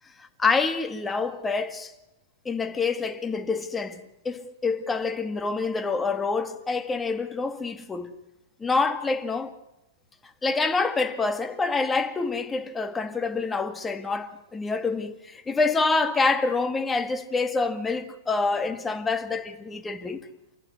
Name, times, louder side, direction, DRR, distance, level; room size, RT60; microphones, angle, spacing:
voice 1, 0.2-1.9 2.5-8.1 8.6-9.6 10.4-20.2, left 4 dB, 15° left, 1.9 m, -27 dB
29.0 x 14.0 x 9.8 m
hypercardioid pair, 115°, 0 cm